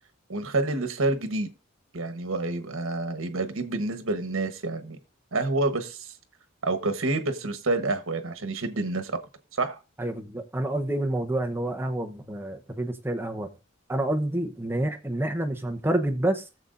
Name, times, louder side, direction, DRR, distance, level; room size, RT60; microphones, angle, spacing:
voice 1, 0.3-1.5 1.9-5.0 5.3-6.1 6.6-9.2 9.6-9.8, right 2 dB, 80° right, 1.2 m, -28 dB
voice 2, 10.0-13.5 13.9-16.5, right 1 dB, 10° right, 0.9 m, -28 dB
20.0 x 7.1 x 2.6 m
head